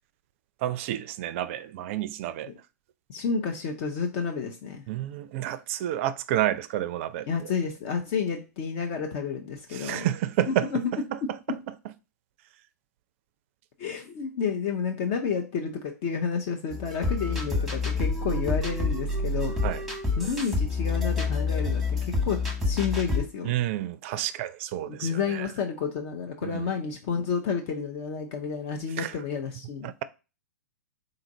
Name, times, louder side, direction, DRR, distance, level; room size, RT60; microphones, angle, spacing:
voice 1, 0.6-2.5 4.9-7.3 9.7-10.7 19.6-19.8 23.4-25.5 26.4-26.7 29.0-29.2 29.8-30.0, right 12 dB, 45° right, 0.4 m, -30 dB
voice 2, 3.1-4.8 7.3-10.1 10.5-11.0 11.2-11.6 13.8-19.6 20.2-23.5 24.9-29.9, left 6 dB, 45° left, 0.6 m, -30 dB
sound 1, 16.7-23.2, left 3 dB, ahead, 0.9 m, -28 dB
3.8 x 2.5 x 4.0 m
figure-of-eight pair, 110°, 9 cm